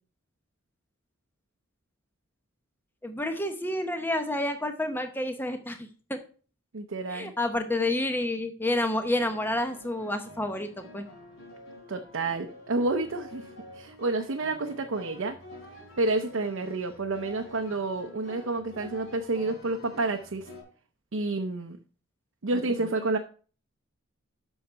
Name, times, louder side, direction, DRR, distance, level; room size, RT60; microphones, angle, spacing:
voice 1, 3.0-6.2 7.1-11.0 22.5-22.6, left 1 dB, 10° left, 7 dB, 0.8 m, -29 dB
voice 2, 6.7-7.3 11.9-13.5 13.7-15.4 16.0-20.5 21.1-21.8 22.4-23.2, right 2 dB, 70° right, 4 dB, 0.7 m, -29 dB
sound 1, 9.0-20.6, left 1 dB, 80° left, 3.5 m, -48 dB
7.8 x 6.4 x 4.5 m, 0.39 s
head